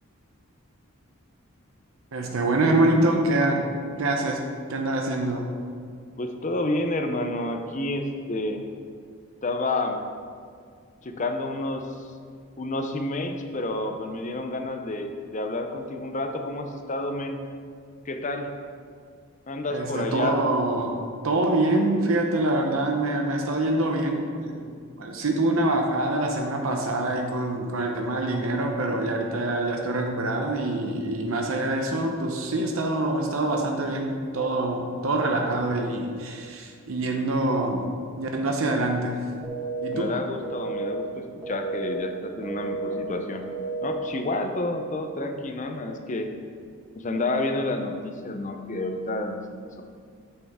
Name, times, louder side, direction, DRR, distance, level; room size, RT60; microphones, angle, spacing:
voice 1, 2.1-3.7 4.0-4.4 4.7-5.5 19.7-20.9 21.2-24.7 25.0-37.9 38.2-39.2 39.8-40.1, right 2 dB, 75° right, 2 dB, 0.8 m, -25 dB
voice 2, 6.2-8.6 9.4-10.0 11.0-11.9 12.6-17.4 18.1-18.5 19.5-20.4 39.9-43.4 43.8-46.3 47.0-49.8, left 2 dB, 35° left, 5 dB, 0.6 m, -29 dB
sound 1, 39.4-39.9 40.4-40.9 41.4-41.9 42.4-42.9 43.4-43.9, right 4 dB, 5° left, 1.9 m, -32 dB
9.0 x 6.5 x 3.6 m, 2.2 s
head